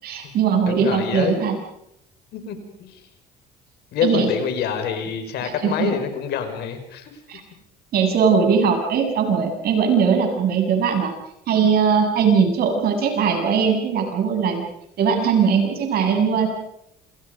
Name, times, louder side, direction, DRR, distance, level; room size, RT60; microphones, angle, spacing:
voice 1, 0.0-1.6 4.0-4.3 5.4-6.0 7.3-7.4 7.9-11.1 11.5-14.7 15.0-16.5, right 6 dB, 65° right, 4 dB, 7.7 m, -20 dB
voice 2, 0.7-1.4 2.3-3.0 3.9-7.1, left 7 dB, 75° left, 7 dB, 5.3 m, -26 dB
29.0 x 28.0 x 5.3 m, 0.78 s
cardioid pair, 110°, 17 cm